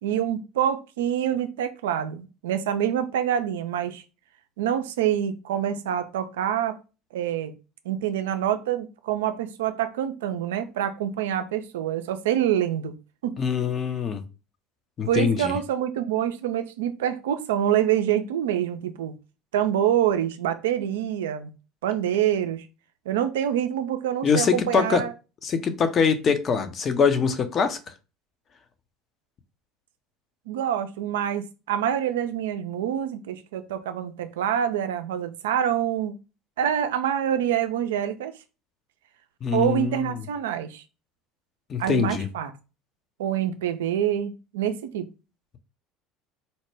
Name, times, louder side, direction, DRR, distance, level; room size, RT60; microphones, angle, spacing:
voice 1, 0.0-4.0 4.6-6.8 7.1-7.5 7.9-12.9 13.2-13.3 15.1-19.1 19.5-21.5 21.8-22.7 23.1-25.1 30.5-36.2 36.6-38.3 39.5-40.8 41.8-42.5 43.2-45.1, right 10 dB, 80° right, 0.4 m, -26 dB
voice 2, 13.4-14.2 15.0-15.6 24.2-25.0 25.4-27.8 39.4-40.1 41.7-42.3, left 6 dB, 40° left, 0.6 m, -23 dB
4.2 x 2.1 x 3.2 m
hypercardioid pair, 75°, 0 cm